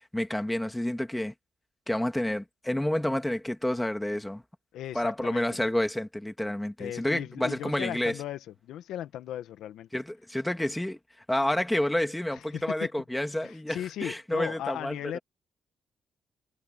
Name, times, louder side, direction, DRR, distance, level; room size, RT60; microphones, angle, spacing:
voice 1, 0.1-1.3 1.9-4.4 4.9-8.2 9.9-11.0 11.3-15.2, left 1 dB, 5° left, 2.3 m, -29 dB
voice 2, 4.7-5.6 6.8-9.9 12.5-12.6 13.4-15.2, left 11 dB, 80° left, 1.7 m, -37 dB
cardioid pair, 90°, 0 cm